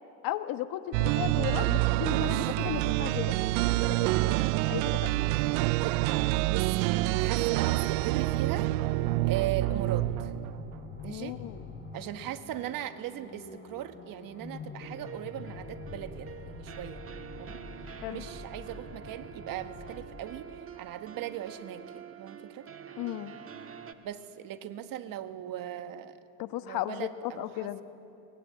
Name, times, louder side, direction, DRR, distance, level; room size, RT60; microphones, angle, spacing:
voice 1, 0.2-3.4 3.7-5.1 11.1-11.6 18.0-18.2 23.0-23.3 26.4-27.8, left 14 dB, 55° left, 10 dB, 1.3 m, -35 dB
sound 1, 0.9-10.8, right 21 dB, 70° right, 0.5 m, -27 dB
voice 2, 2.0-2.5 5.7-6.0 6.5-8.7 9.2-10.3 11.0-11.4 11.9-17.6 18.1-22.7 24.0-26.2 26.6-27.8, right 11 dB, 55° right, 10 dB, 1.5 m, -39 dB
sound 2, 2.6-20.6, left 3 dB, 25° left, 7.0 m, -46 dB
sound 3, 14.8-23.9, right 7 dB, 30° right, 1.6 m, -46 dB
23.5 x 21.0 x 8.5 m, 2.7 s
hypercardioid pair, 85°, 41 cm